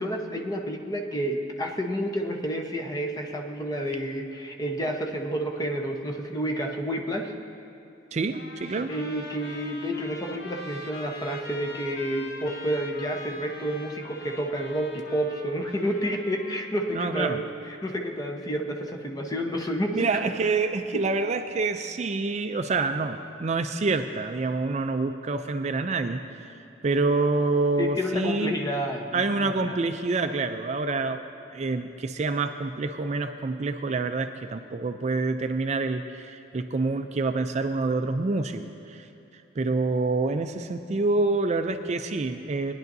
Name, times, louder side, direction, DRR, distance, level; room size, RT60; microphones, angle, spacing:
voice 1, 0.0-7.3 8.9-20.1 20.9-21.0 27.8-29.8, equal, 20° left, 2 dB, 0.9 m, -30 dB
voice 2, 8.1-8.9 16.9-17.4 19.9-26.6 26.8-28.5 29.1-39.1 39.3-42.7, right 3 dB, 35° right, 7 dB, 0.4 m, -27 dB
Trumpet, 8.3-17.0, left 2 dB, 55° left, 1.0 m, -42 dB
19.0 x 10.5 x 2.7 m, 3.0 s
head